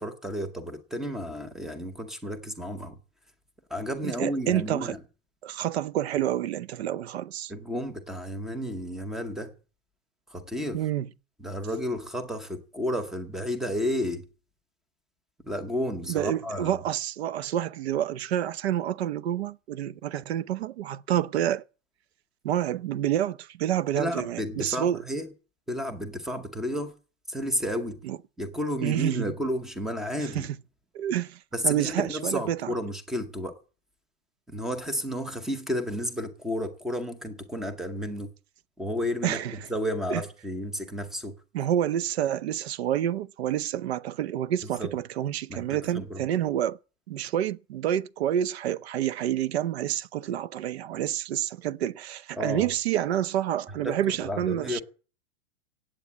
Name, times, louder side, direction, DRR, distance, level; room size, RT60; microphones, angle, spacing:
voice 1, 0.0-3.0 3.7-5.0 7.5-9.5 10.3-10.9 11.4-14.2 15.5-16.8 23.9-25.3 25.7-26.9 27.3-28.0 28.4-30.5 31.5-33.5 34.5-38.3 38.8-39.4 39.7-41.3 44.8-44.9 45.5-46.2 52.4-52.7 53.8-54.8, equal, ahead, 0.7 m, -32 dB
voice 2, 4.0-5.0 5.4-7.5 10.7-11.1 16.1-21.6 22.4-25.0 28.0-28.2 28.8-29.3 30.2-30.5 30.9-32.7 39.2-39.5 40.1-40.2 41.5-46.8 47.1-54.8, right 11 dB, 55° right, 0.7 m, -28 dB
17.0 x 8.5 x 8.5 m
supercardioid pair, 170°, 38 cm